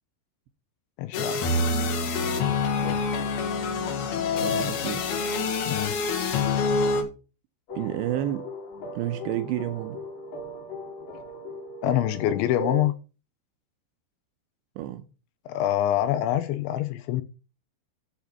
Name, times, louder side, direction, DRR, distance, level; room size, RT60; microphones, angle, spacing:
voice 1, 1.0-1.4 2.8-3.1 5.7-6.0 11.8-12.9 15.5-17.2, left 12 dB, 80° left, 2.8 m, -25 dB
sound 1, 1.1-7.0, left 4 dB, 60° left, 3.1 m, -26 dB
voice 2, 4.4-5.0 7.7-8.4 8.9-10.0 14.8-15.0, right 12 dB, 80° right, 2.7 m, -30 dB
sound 2, 7.7-12.8, equal, 45° left, 4.6 m, -38 dB
7.8 x 7.0 x 5.8 m
omnidirectional pair, 5.7 m